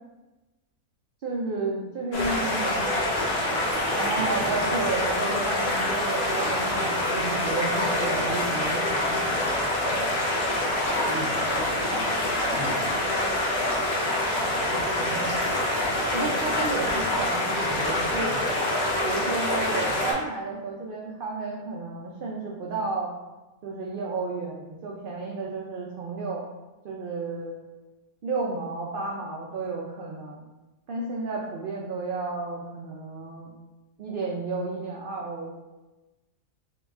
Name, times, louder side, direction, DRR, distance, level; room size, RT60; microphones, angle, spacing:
voice 1, 1.2-3.2 3.9-9.7 14.7-15.4 16.1-18.4 19.0-23.1 23.6-26.4 26.8-27.5 28.2-30.5 30.9-33.5 34.0-35.6, right 3 dB, 80° right, -3 dB, 0.4 m, -32 dB
sound 1, 2.1-20.1, left 1 dB, 55° left, 1.0 m, -26 dB
voice 2, 10.9-13.8, left 1 dB, 75° left, 0 dB, 1.1 m, -39 dB
3.8 x 2.2 x 3.4 m, 1.1 s
omnidirectional pair, 1.5 m